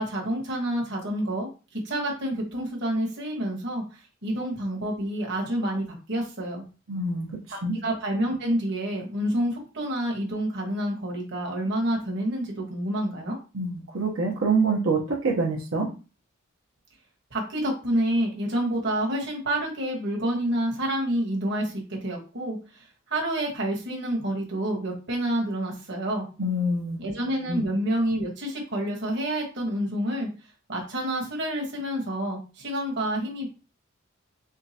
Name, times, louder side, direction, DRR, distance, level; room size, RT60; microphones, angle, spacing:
voice 1, 0.0-1.5 1.8-6.6 7.5-13.4 17.3-21.7 22.0-26.3 27.0-30.3 30.7-33.5, right 1 dB, 55° right, -1 dB, 1.3 m, -28 dB
voice 2, 6.9-7.3 7.6-7.8 13.5-15.9 26.4-27.0 27.5-27.6, right 3 dB, 90° right, -2 dB, 1.0 m, -25 dB
3.7 x 3.4 x 2.9 m, 0.33 s
head